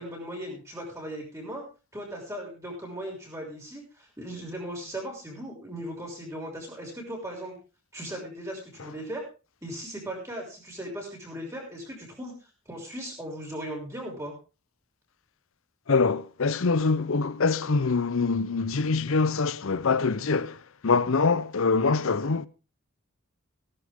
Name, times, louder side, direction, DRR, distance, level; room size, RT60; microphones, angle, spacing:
voice 1, 0.0-1.6 1.9-7.5 7.9-9.2 9.6-12.3 12.7-14.3, equal, 15° right, 5.9 m, -38 dB
voice 2, 15.9-20.6 20.8-22.5, left 4 dB, 65° left, 0.7 m, -24 dB
18.0 x 11.5 x 3.6 m
head